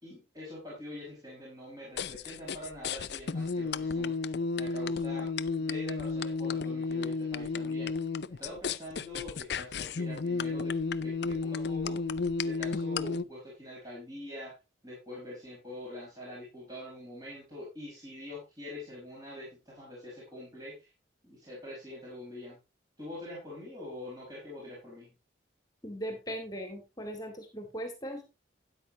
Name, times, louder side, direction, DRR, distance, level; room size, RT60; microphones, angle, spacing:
voice 1, 0.0-5.3 5.6-7.9 8.4-10.8 11.0-12.0 12.4-14.5 14.8-20.9 21.2-22.6 23.0-25.1, left 1 dB, 20° right, -5 dB, 5.3 m, -44 dB
sound 1, 2.0-13.2, left 4 dB, 55° left, 0.5 m, -32 dB
voice 2, 25.8-28.2, equal, 20° left, 5 dB, 2.3 m, -39 dB
13.0 x 9.8 x 2.9 m, 0.26 s
head